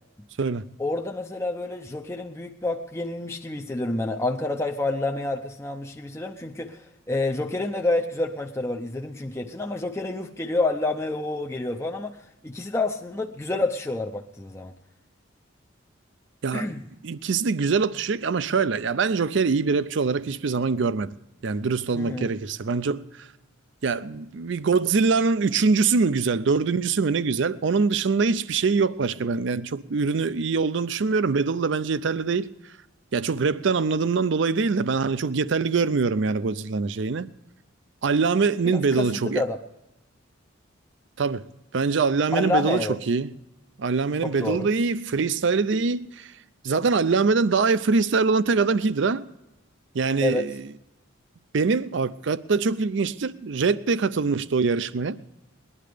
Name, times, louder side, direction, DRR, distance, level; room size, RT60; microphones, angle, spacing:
voice 1, 0.8-12.2 12.4-14.7 16.5-16.8 21.9-22.3 38.6-39.6 42.3-43.0 44.2-44.7 50.2-50.5, left 2 dB, 15° left, 0.5 m, -28 dB
voice 2, 17.0-21.1 21.4-23.3 23.8-32.5 33.1-37.3 38.0-39.4 41.2-41.5 41.7-43.3 43.8-46.3 46.6-49.3 49.9-50.6 51.5-55.2, right 4 dB, 60° right, 0.5 m, -23 dB
19.0 x 11.0 x 5.0 m
head